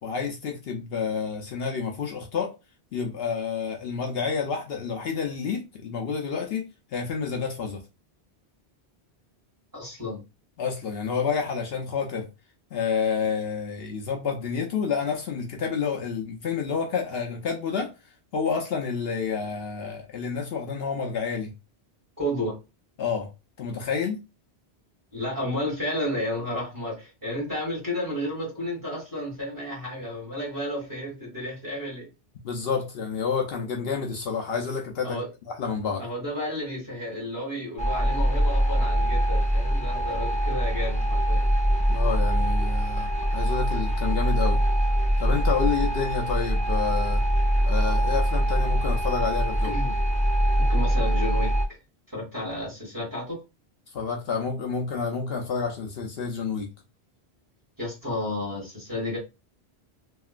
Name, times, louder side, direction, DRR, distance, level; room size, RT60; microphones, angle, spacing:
voice 1, 0.0-2.5 2.9-6.6 6.9-7.8 10.6-12.3 12.7-17.9 18.3-21.5 23.0-23.3 23.6-24.2 32.4-35.2 35.5-36.0 41.9-44.6 45.2-47.2 47.7-49.8 53.9-56.7, left 5 dB, 65° left, 0.8 m, -29 dB
voice 2, 9.7-10.2 22.2-22.6 25.1-32.1 35.0-35.3 36.0-41.4 49.6-49.9 50.6-51.5 52.1-53.4 57.8-59.2, left 1 dB, 20° right, 1.7 m, -32 dB
sound 1, 37.8-51.6, equal, 10° left, 0.6 m, -23 dB
2.9 x 2.8 x 2.4 m
omnidirectional pair, 1.1 m